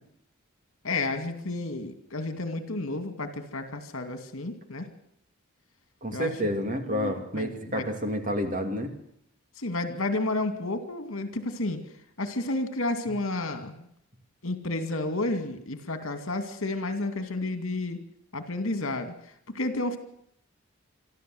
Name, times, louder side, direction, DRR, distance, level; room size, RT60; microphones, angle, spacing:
voice 1, 0.8-4.9 6.1-6.3 6.9-7.9 9.6-11.8 12.2-13.9 14.4-18.0 18.3-20.0, left 2 dB, 70° left, 8 dB, 2.5 m, -31 dB
voice 2, 6.0-8.9, equal, 35° right, 5 dB, 2.6 m, -29 dB
24.5 x 13.5 x 7.9 m, 0.73 s
head